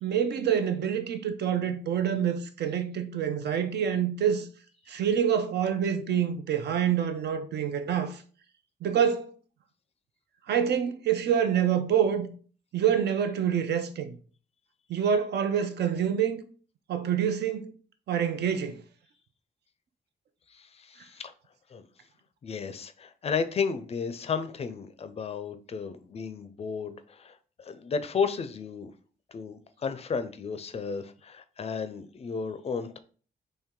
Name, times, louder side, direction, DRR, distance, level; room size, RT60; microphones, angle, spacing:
voice 1, 0.0-4.5 4.9-8.2 8.8-9.3 10.5-12.3 12.7-14.2 14.9-16.4 16.9-17.7 18.1-18.8, right 8 dB, 80° right, 0.6 m, -26 dB
voice 2, 20.5-21.3 21.7-21.8 22.4-28.9 29.3-33.0, left 5 dB, 35° left, 0.4 m, -33 dB
4.5 x 3.1 x 3.7 m
wide cardioid pair, 170°, 17 cm